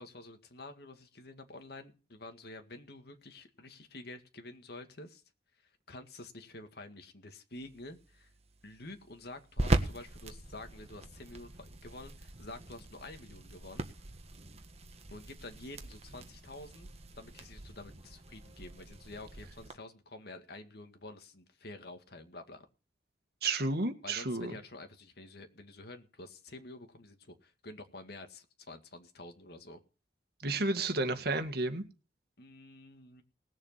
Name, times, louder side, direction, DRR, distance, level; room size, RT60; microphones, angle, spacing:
voice 1, 0.0-5.2 5.6-8.3 8.6-13.9 15.1-16.9 17.2-22.7 24.0-29.8 32.4-33.2, left 2 dB, 65° left, 2.0 m, -49 dB
sound 1, 7.5-19.7, right 1 dB, 40° right, 1.5 m, -39 dB
voice 2, 23.4-24.5 30.4-31.8, right 2 dB, 65° right, 1.9 m, -31 dB
19.0 x 7.4 x 5.8 m
head